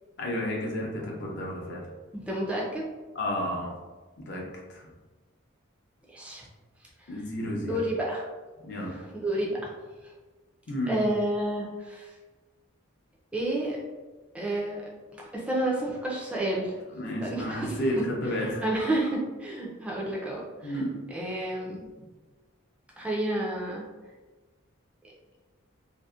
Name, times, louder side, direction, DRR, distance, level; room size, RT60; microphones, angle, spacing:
voice 1, 0.2-1.9 3.1-3.7 4.2-4.4 4.7-4.9 7.1-7.7 8.6-8.9 10.7-11.0 16.9-18.6 20.6-20.9, left 1 dB, 55° left, -2 dB, 0.5 m, -31 dB
voice 2, 2.1-2.8 6.1-6.5 7.0-7.1 7.6-8.3 8.7-9.7 10.9-12.1 13.3-13.8 14.3-16.7 17.2-17.8 18.4-20.8 21.1-21.9 23.0-23.8, right 1 dB, 5° right, -4 dB, 0.4 m, -30 dB
2.6 x 2.1 x 2.3 m, 1.3 s
head